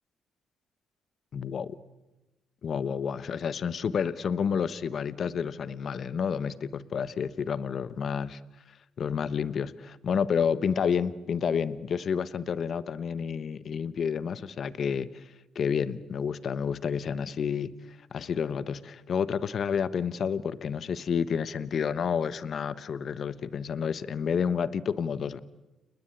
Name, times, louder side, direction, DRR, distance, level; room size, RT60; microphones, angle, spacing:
voice 1, 1.3-1.7 2.6-8.4 9.0-15.3 15.5-25.4, left 7 dB, 55° left, 15 dB, 1.1 m, -30 dB
29.5 x 20.5 x 8.7 m, 1.0 s
cardioid pair, 90°, 0 cm